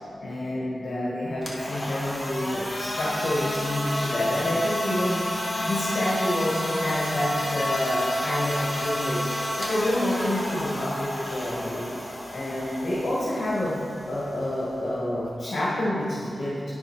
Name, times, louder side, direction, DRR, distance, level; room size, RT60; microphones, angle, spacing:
voice 1, 0.2-11.9 12.3-16.6, left 1 dB, 50° left, -7 dB, 1.7 m, -28 dB
sound 1, 1.3-15.4, left 1 dB, 15° left, 1.1 m, -31 dB
10.0 x 5.4 x 4.7 m, 2.4 s
wide cardioid pair, 155°, 0 cm